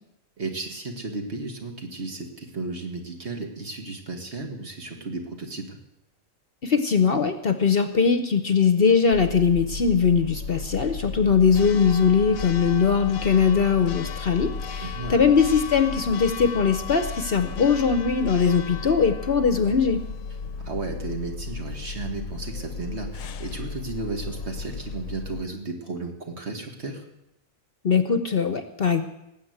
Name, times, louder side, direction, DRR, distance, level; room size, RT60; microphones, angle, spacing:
voice 1, 0.4-5.8 14.8-15.2 20.6-27.0, right 3 dB, 50° right, 3 dB, 2.1 m, -34 dB
voice 2, 6.6-20.0 27.8-29.0, left 6 dB, 50° left, 9 dB, 0.9 m, -21 dB
Church bell, 9.1-25.4, left 5 dB, 75° left, 1.2 m, -34 dB
19.0 x 7.9 x 7.9 m, 0.87 s
omnidirectional pair, 1.4 m